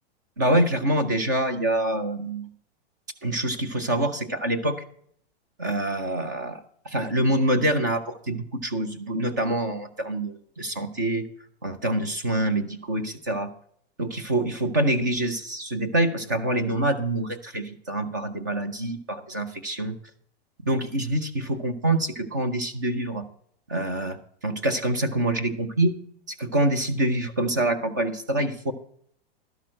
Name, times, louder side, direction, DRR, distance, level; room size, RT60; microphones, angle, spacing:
voice 1, 0.4-2.5 3.2-4.8 5.6-11.3 11.6-13.5 14.0-20.0 20.6-23.2 23.7-24.2 24.4-26.0 26.3-28.7, right 1 dB, 20° right, 9 dB, 0.3 m, -26 dB
12.0 x 5.9 x 6.2 m, 0.63 s
supercardioid pair, 180°, 32 cm